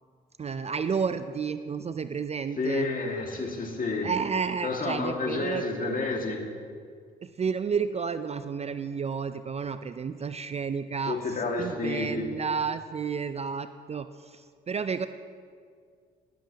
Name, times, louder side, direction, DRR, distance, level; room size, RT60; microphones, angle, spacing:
voice 1, 0.4-2.9 4.0-5.6 7.2-11.2 11.6-15.1, right 6 dB, 30° right, 11 dB, 0.4 m, -31 dB
voice 2, 2.6-4.1 4.6-6.4 11.1-12.3, left 3 dB, 40° left, 1 dB, 2.0 m, -30 dB
19.0 x 7.5 x 2.9 m, 2.1 s
hypercardioid pair, 55°, 21 cm